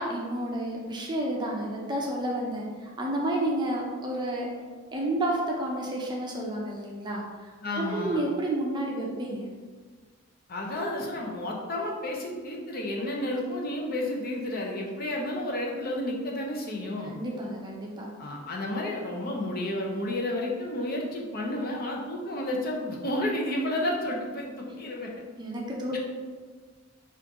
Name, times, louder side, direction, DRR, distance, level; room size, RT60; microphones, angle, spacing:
voice 1, 0.0-4.5 4.9-7.3 7.7-9.5 17.1-18.1 25.4-26.0, right 1 dB, 20° right, -2 dB, 0.5 m, -30 dB
voice 2, 7.6-8.2 10.5-17.2 18.2-25.1 25.9-26.0, left 1 dB, 45° left, -1 dB, 0.6 m, -31 dB
4.3 x 2.5 x 3.6 m, 1.5 s
head